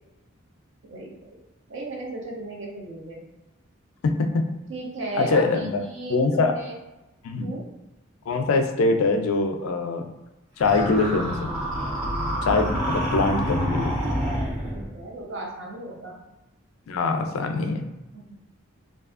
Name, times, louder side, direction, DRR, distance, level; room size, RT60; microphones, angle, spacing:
voice 1, 0.8-1.4 1.7-3.2 4.7-6.7 7.4-7.6 13.0-13.2 14.7-16.2 18.1-18.3, right 2 dB, 65° right, -1 dB, 0.6 m, -36 dB
voice 2, 4.0-4.4 5.1-5.8 6.1-6.5 7.2-7.5 8.3-10.0 10.6-11.5 12.4-13.9 16.9-17.8, left 3 dB, 80° left, 6 dB, 0.4 m, -23 dB
Massive growl, 10.6-14.9, equal, 90° right, 1.4 m, -27 dB
2.6 x 2.4 x 2.4 m, 1.0 s
head